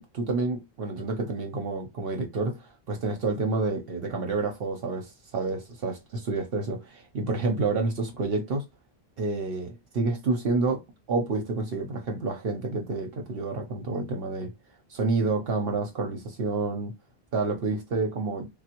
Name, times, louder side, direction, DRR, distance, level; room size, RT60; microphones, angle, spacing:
voice 1, 0.0-5.9 6.3-8.6 9.2-10.8 11.1-14.5 14.9-16.9 17.3-18.5, right 3 dB, 70° right, 0.8 m, -29 dB
3.3 x 2.1 x 2.8 m
omnidirectional pair, 1.0 m